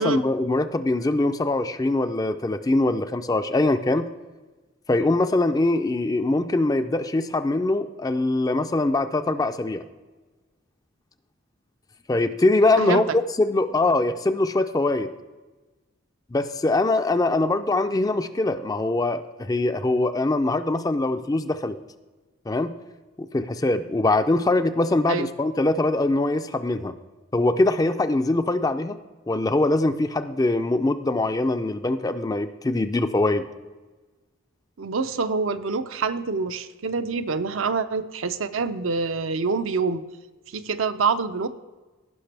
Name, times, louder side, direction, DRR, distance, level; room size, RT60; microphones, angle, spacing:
voice 1, 0.0-4.1 4.9-9.8 12.1-15.1 16.3-21.8 22.5-22.8 23.2-26.9 27.3-29.0 29.3-33.4, left 2 dB, 15° left, 10 dB, 0.4 m, -23 dB
voice 2, 34.8-40.0 40.5-41.5, right 4 dB, 65° right, 10 dB, 0.5 m, -26 dB
16.0 x 5.9 x 3.3 m, 1.2 s
head